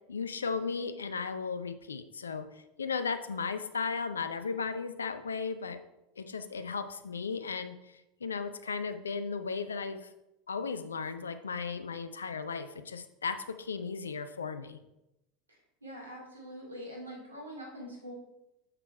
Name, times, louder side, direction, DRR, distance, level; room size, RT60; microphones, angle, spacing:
voice 1, 0.1-5.8 6.2-10.1 10.5-14.8, left 5 dB, 80° left, 11 dB, 0.5 m, -36 dB
voice 2, 15.8-18.1, equal, 90° right, -2 dB, 2.3 m, -44 dB
6.5 x 5.9 x 4.4 m, 0.91 s
figure-of-eight pair, 80°, 0 cm